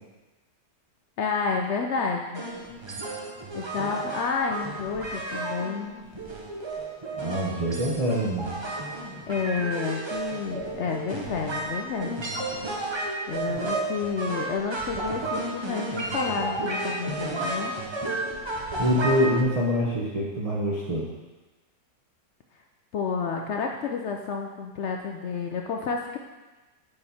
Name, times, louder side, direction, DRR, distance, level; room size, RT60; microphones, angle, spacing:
voice 1, 1.2-2.4 3.5-5.9 9.3-12.2 13.3-17.7 22.9-26.2, left 5 dB, 75° left, 2 dB, 0.6 m, -30 dB
sound 1, 2.3-19.4, right 2 dB, 45° right, 0.3 m, -32 dB
voice 2, 7.2-8.5 18.8-21.1, equal, 30° right, -6 dB, 0.8 m, -25 dB
6.9 x 5.3 x 4.2 m, 1.2 s
omnidirectional pair, 1.7 m